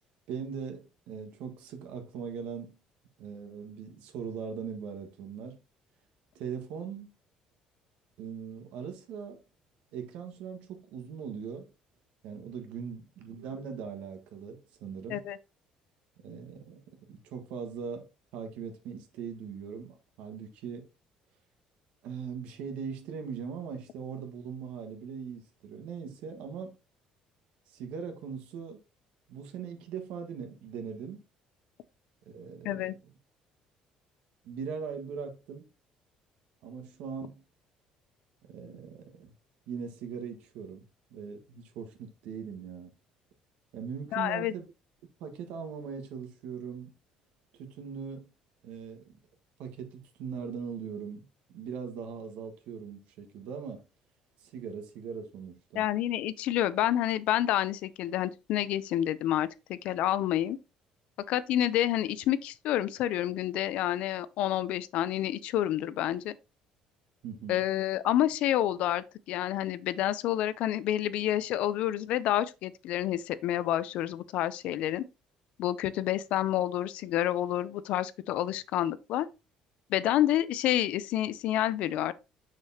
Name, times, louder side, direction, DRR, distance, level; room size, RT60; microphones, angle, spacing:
voice 1, 0.3-2.8 3.2-5.6 6.3-7.1 8.2-9.4 9.9-11.7 12.2-15.2 16.2-18.1 18.3-20.9 22.0-26.8 27.7-28.8 29.3-31.2 32.3-33.1 34.4-35.7 36.6-37.4 38.5-39.3 39.7-40.8 41.1-42.9 43.7-44.7 45.2-46.9 47.6-48.3 48.6-49.2 49.6-53.8 54.4-55.9 67.2-67.6, right 6 dB, 75° right, 1.6 m, -40 dB
voice 2, 32.6-33.0 44.1-44.5 55.7-60.6 61.3-66.3 67.5-75.0 75.6-79.3 79.9-82.1, left 12 dB, 60° left, 0.5 m, -29 dB
6.7 x 6.4 x 2.8 m
cardioid pair, 165°, 2 cm